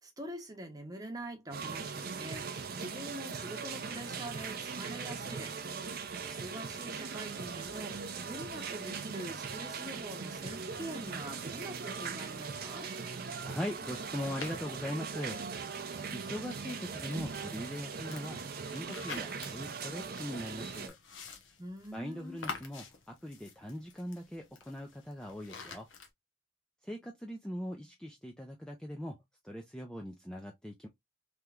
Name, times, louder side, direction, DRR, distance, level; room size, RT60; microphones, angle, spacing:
voice 1, 0.0-5.6 6.3-12.9 21.6-22.4, right 1 dB, 20° right, 0.8 m, -44 dB
sound 1, 1.5-20.9, right 5 dB, 50° right, 0.5 m, -40 dB
voice 2, 13.4-15.4 16.1-21.0 21.9-25.9 26.8-30.9, equal, 5° left, 0.4 m, -41 dB
sound 2, 14.4-15.1 16.1-26.1, left 4 dB, 75° left, 0.9 m, -49 dB
3.4 x 2.9 x 2.3 m
head